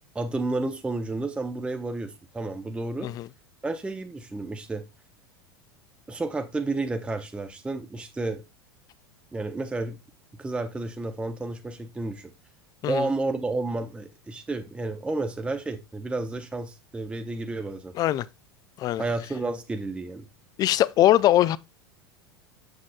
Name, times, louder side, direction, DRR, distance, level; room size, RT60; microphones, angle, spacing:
voice 1, 0.1-3.1 3.6-4.8 6.1-8.4 9.3-10.0 10.4-12.3 12.9-17.9 19.0-20.3, right 2 dB, 10° right, 0.6 m, -31 dB
voice 2, 20.6-21.6, left 13 dB, 30° left, 0.3 m, -21 dB
7.2 x 6.4 x 2.2 m
figure-of-eight pair, 80°, 13 cm